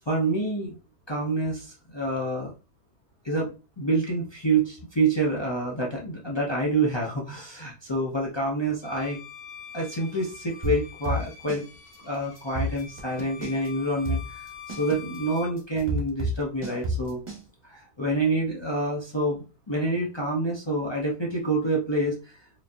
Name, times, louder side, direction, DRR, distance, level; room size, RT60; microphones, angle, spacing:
voice 1, 0.1-0.8 1.1-2.5 3.2-3.5 3.8-9.2 9.7-11.6 12.0-14.4 14.7-17.2 17.7-22.1, right 2 dB, 40° left, -2 dB, 0.3 m, -27 dB
Bowed string instrument, 8.8-15.6, left 7 dB, 90° left, 1.5 m, -45 dB
sound 1, 10.6-11.6 11.9-12.0 12.4-13.7 14.0-17.4, right 1 dB, 20° right, 0.9 m, -29 dB
4.8 x 2.8 x 2.5 m, 0.33 s
omnidirectional pair, 1.6 m